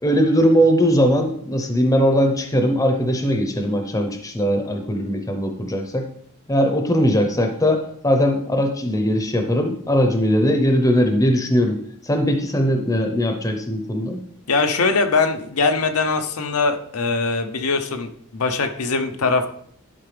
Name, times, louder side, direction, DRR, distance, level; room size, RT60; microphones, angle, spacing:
voice 1, 0.0-6.1 6.5-11.8 12.0-14.2, equal, 15° left, 5 dB, 0.7 m, -20 dB
voice 2, 14.5-19.5, left 4 dB, 80° left, 6 dB, 0.8 m, -21 dB
11.0 x 4.5 x 3.3 m, 0.63 s
head